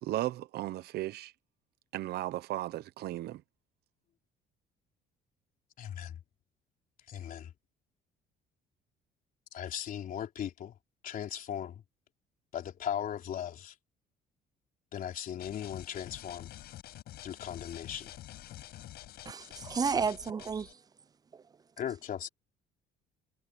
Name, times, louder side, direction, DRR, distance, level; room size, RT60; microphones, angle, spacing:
voice 1, 0.0-1.3 1.9-3.4, right 15 dB, 75° right, 1.1 m, -35 dB
voice 2, 5.8-6.2 7.1-7.5 9.5-10.7 11.0-11.8 12.5-13.7 14.9-16.5 17.2-18.1 21.8-22.3, left 9 dB, 55° left, 3.6 m, -38 dB
sound 1, 15.4-20.7, left 14 dB, 75° left, 5.3 m, -48 dB
voice 3, 19.3-20.7, right 5 dB, 25° right, 0.4 m, -31 dB
cardioid pair, 110°, 17 cm